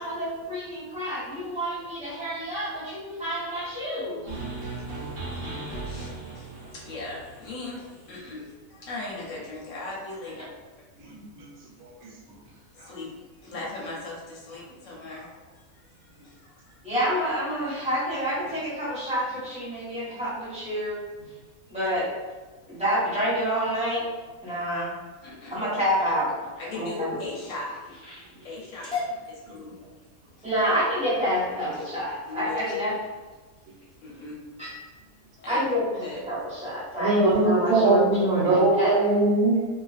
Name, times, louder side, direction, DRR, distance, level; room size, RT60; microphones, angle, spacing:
voice 1, 0.0-4.3 16.8-21.0 21.7-22.1 22.7-24.0 24.4-24.9 25.5-26.3 26.7-27.1 30.4-32.9 34.6-34.7 35.5-38.9, equal, 5° right, -11 dB, 0.8 m, -28 dB
sound 1, 4.3-8.2, right 3 dB, 55° right, 0.7 m, -37 dB
voice 2, 5.2-10.4 12.7-16.8 21.7-21.8 25.2-25.6 26.6-27.7 28.4-29.8 30.4-30.5 32.3-32.6 34.0-34.7 35.4-35.7 36.0-36.2, left 3 dB, 70° left, -5 dB, 0.9 m, -39 dB
voice 3, 11.0-11.5 11.8-12.1 12.8-12.9 20.1-20.2 37.0-39.7, right 2 dB, 85° right, -2 dB, 1.1 m, -22 dB
sound 2, 26.0-34.3 34.9-35.3 35.7-36.1 36.5-36.6 36.9-37.0, left 4 dB, 20° left, 1.0 m, -41 dB
2.4 x 2.3 x 2.4 m, 1.3 s
omnidirectional pair, 1.5 m